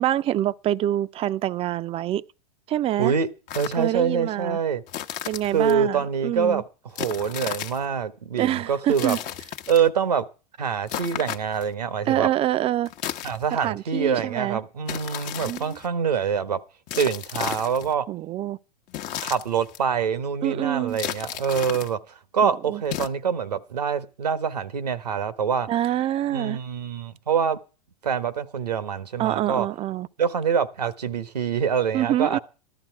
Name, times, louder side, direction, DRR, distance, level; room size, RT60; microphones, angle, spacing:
voice 1, 0.0-2.2 2.7-3.1 3.8-4.6 5.3-6.6 8.3-9.2 12.0-12.9 13.5-14.6 15.4-15.8 18.1-18.6 20.4-21.0 22.4-22.8 25.7-26.6 29.2-30.1 31.9-32.4, right 13 dB, 30° right, 0.6 m, -26 dB
sound 1, 3.5-3.9 4.9-5.8 6.9-7.9 8.9-9.9 10.9-11.7 12.8-13.7 14.9-15.9 16.9-17.9 18.9-19.8 20.9-21.9 22.8-23.1, left 11 dB, 40° left, 1.0 m, -34 dB
voice 2, 3.5-4.8 5.5-6.6 7.0-9.2 9.7-10.2 10.6-12.3 13.2-16.6 17.0-18.1 19.2-22.0 22.3-25.7 26.3-27.6 28.0-29.7 30.2-32.4, right 7 dB, 90° right, 1.3 m, -25 dB
14.5 x 12.0 x 4.7 m
hypercardioid pair, 105°, 20 cm